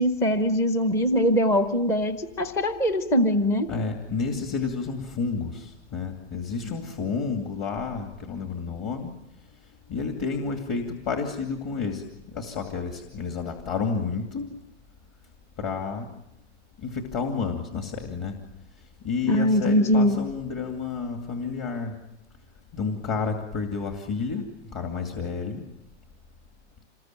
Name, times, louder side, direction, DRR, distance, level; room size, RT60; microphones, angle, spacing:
voice 1, 0.0-3.7 19.3-20.3, equal, 10° left, 9 dB, 0.9 m, -22 dB
voice 2, 3.7-9.1 9.9-12.0 12.3-14.4 15.6-16.1 16.8-18.3 19.0-21.9 22.7-25.6, left 5 dB, 25° left, 3 dB, 2.5 m, -30 dB
27.5 x 21.0 x 9.1 m, 0.86 s
hypercardioid pair, 165°, 35 cm